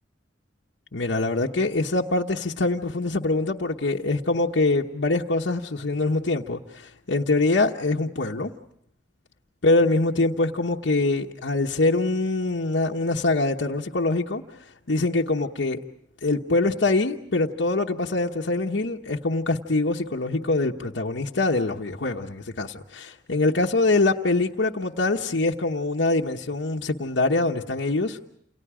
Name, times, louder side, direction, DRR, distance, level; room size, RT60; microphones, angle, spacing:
voice 1, 0.9-8.5 9.6-15.8 16.2-28.3, left 2 dB, 80° left, 0 dB, 1.1 m, -24 dB
29.0 x 29.0 x 5.0 m, 0.69 s
head